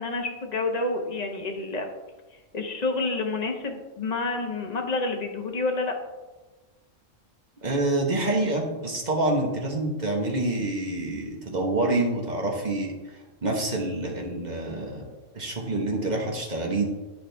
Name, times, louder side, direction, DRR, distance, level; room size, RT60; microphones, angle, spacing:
voice 1, 0.0-1.8 2.5-5.9, left 3 dB, 35° left, 3 dB, 0.9 m, -28 dB
voice 2, 7.6-12.9 13.4-15.0 15.3-16.9, right 2 dB, 35° right, 0 dB, 1.3 m, -27 dB
10.5 x 5.0 x 3.4 m, 1.2 s
omnidirectional pair, 1.3 m